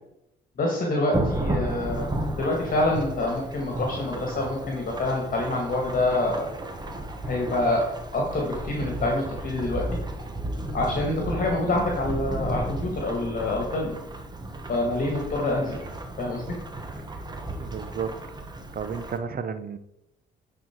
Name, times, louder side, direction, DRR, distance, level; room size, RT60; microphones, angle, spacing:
voice 1, 0.6-6.5 7.2-9.9 10.7-13.9 14.7-15.8 16.2-16.6, left 2 dB, 45° left, -1 dB, 1.8 m, -26 dB
Thunderstorm / Rain, 1.1-19.2, right 1 dB, 20° right, 1.1 m, -33 dB
voice 2, 17.6-18.1 18.4-19.8, right 6 dB, 50° right, 11 dB, 0.8 m, -33 dB
9.3 x 4.4 x 4.5 m, 0.87 s
cardioid pair, 90°, 20 cm